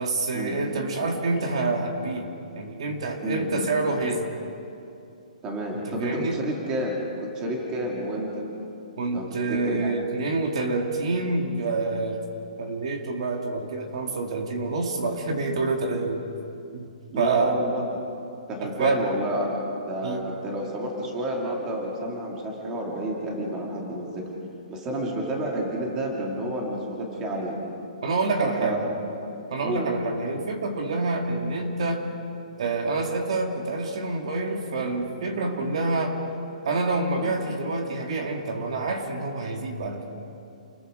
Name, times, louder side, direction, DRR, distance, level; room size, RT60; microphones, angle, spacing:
voice 1, 0.0-2.3 2.6-4.3 5.7-6.4 9.0-12.2 12.6-16.2 16.7-16.9 17.2-17.6 18.6-19.0 20.0-20.3 28.0-28.9 29.5-32.1 32.6-36.2 36.6-40.0, right 3 dB, 45° right, 3 dB, 2.2 m, -27 dB
voice 2, 3.2-3.7 5.4-8.5 9.1-9.9 17.1-17.8 18.5-24.3 24.7-27.6 28.4-28.9 29.6-29.9 37.2-37.4, right 1 dB, 15° right, -1 dB, 2.3 m, -30 dB
29.0 x 21.5 x 5.1 m, 2.7 s
hypercardioid pair, 180°, 4 cm